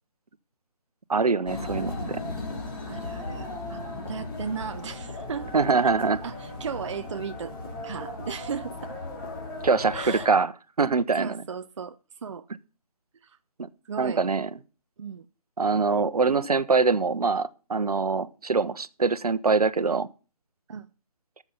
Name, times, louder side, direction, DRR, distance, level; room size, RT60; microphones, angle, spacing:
voice 1, 1.1-2.2 5.5-6.2 9.6-10.5 10.8-11.4 13.6-13.7 14.0-14.5 15.6-20.1, right 4 dB, 75° right, 0.9 m, -24 dB
sound 1, 1.5-10.3, left 2 dB, 35° left, 3.4 m, -36 dB
voice 2, 2.9-5.6 6.2-7.5 7.8-9.0 9.9-10.3 11.2-12.0 12.2-12.5 13.2-13.4 13.8-14.3 15.0-15.3 20.7-20.9, right 6 dB, 50° right, 0.5 m, -36 dB
13.0 x 7.1 x 5.6 m
figure-of-eight pair, 155°, 20 cm